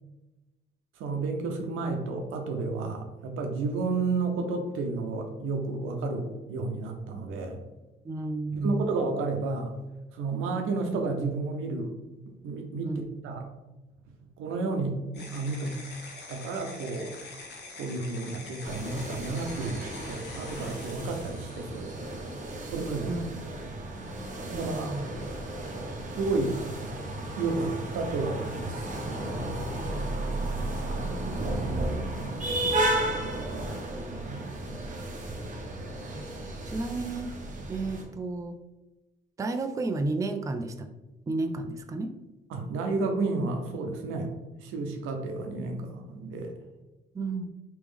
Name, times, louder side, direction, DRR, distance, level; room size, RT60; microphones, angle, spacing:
voice 1, 1.0-7.6 8.5-9.8 10.1-12.0 12.3-13.5 14.4-15.8 16.3-17.1 17.7-21.9 22.7-23.1 24.5-24.9 26.1-26.6 27.4-28.9 30.9-31.1 34.2-34.4 42.5-44.3 44.6-46.5, right 3 dB, 90° right, 4 dB, 0.7 m, -31 dB
voice 2, 8.0-8.8 12.8-13.0 23.1-23.3 24.5-25.0 30.7-32.4 32.6-33.9 36.1-36.3 36.7-37.4 37.7-38.6 39.4-40.9 41.3-42.2 47.1-47.5, right 2 dB, 15° right, 6 dB, 0.3 m, -33 dB
sound 1, 15.1-22.6, left 3 dB, 60° left, 0.8 m, -45 dB
sound 2, 18.6-38.0, right 1 dB, 40° right, 0.9 m, -33 dB
3.3 x 3.0 x 3.4 m, 1.1 s
cardioid pair, 90°, 20 cm